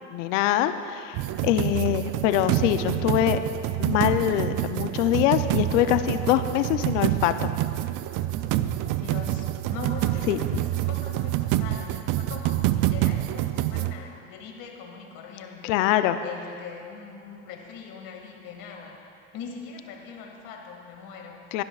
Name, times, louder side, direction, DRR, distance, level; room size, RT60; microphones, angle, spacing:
voice 1, 0.1-3.4 3.8-7.5 10.3-10.4 15.6-16.2 21.5-21.6, left 12 dB, 80° left, 11 dB, 0.7 m, -24 dB
sound 1, 1.1-13.9, right 14 dB, 60° right, 0.5 m, -27 dB
voice 2, 8.2-8.7 9.0-19.0 19.3-21.6, left 6 dB, 65° left, 1 dB, 2.1 m, -41 dB
19.0 x 12.0 x 2.4 m, 2.4 s
supercardioid pair, 90°, 37 cm